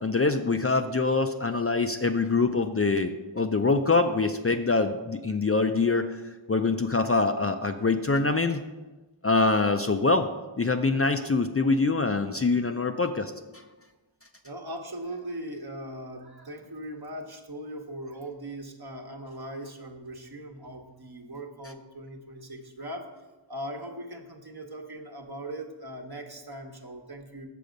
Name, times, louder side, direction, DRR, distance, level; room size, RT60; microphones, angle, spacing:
voice 1, 0.0-6.2 6.5-8.6 9.2-10.3 10.6-13.6, left 3 dB, 30° left, 6 dB, 0.4 m, -24 dB
voice 2, 14.4-23.1 23.5-27.5, right 1 dB, 50° right, 3 dB, 1.1 m, -39 dB
6.9 x 6.7 x 5.1 m, 1.2 s
wide cardioid pair, 40°, 48 cm